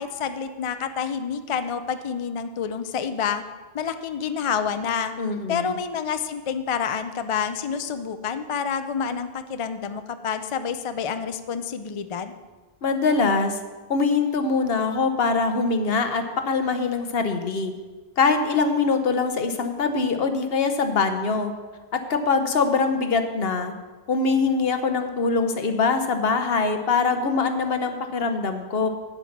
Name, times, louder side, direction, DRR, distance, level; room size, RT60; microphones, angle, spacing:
voice 1, 0.0-3.4 3.7-5.1 5.5-12.3, left 7 dB, 40° left, 9 dB, 0.5 m, -28 dB
voice 2, 5.2-5.8 12.8-13.6 13.9-17.7 18.2-21.5 21.9-23.7 24.1-28.9, left 4 dB, 70° left, 7 dB, 1.1 m, -23 dB
9.0 x 8.2 x 5.9 m, 1.3 s
omnidirectional pair, 1.0 m